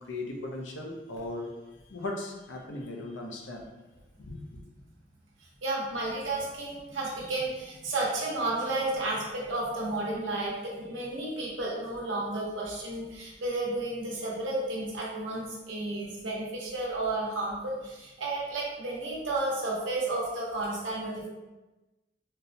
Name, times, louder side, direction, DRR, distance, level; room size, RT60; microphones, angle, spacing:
voice 1, 0.0-1.6 1.9-3.7 4.2-4.6, left 2 dB, 75° left, 0 dB, 0.6 m, -38 dB
voice 2, 5.6-21.3, right 2 dB, 85° right, -4 dB, 0.9 m, -32 dB
4.2 x 2.1 x 2.7 m, 1.1 s
head